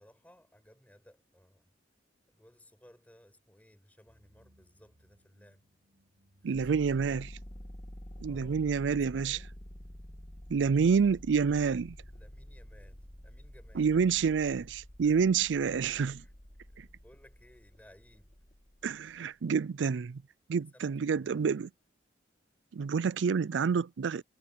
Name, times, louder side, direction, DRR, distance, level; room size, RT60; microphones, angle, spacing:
voice 1, 0.0-1.7 2.3-5.6 6.4-7.2 8.2-8.6 9.1-9.5 12.1-13.9 15.0-15.6 16.2-18.4 20.7-21.5, equal, 10° left, 6.3 m, -60 dB
sound 1, 4.1-13.4, equal, 75° right, 5.6 m, -68 dB
voice 2, 6.4-7.3 8.2-9.4 10.5-12.0 13.8-16.2 16.8-16.9 18.8-20.2 20.5-21.7 22.7-24.2, right 6 dB, 90° right, 0.4 m, -28 dB
sound 2, 6.5-19.2, equal, 35° left, 1.9 m, -49 dB
head